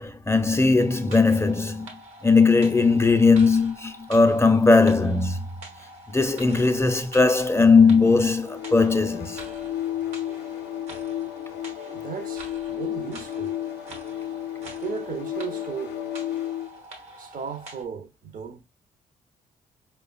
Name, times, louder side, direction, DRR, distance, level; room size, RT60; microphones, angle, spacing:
voice 1, 0.0-1.9 2.2-5.5 6.1-9.4, left 4 dB, 15° left, 0.5 m, -19 dB
sound 1, 0.8-17.8, right 1 dB, 75° right, 1.0 m, -45 dB
sound 2, 8.4-16.8, left 12 dB, 70° left, 0.4 m, -32 dB
voice 2, 10.2-10.5 11.2-11.3 11.9-13.6 14.5-16.0 17.2-18.6, right 7 dB, 50° right, 0.6 m, -36 dB
4.8 x 2.1 x 2.3 m
hypercardioid pair, 45°, 18 cm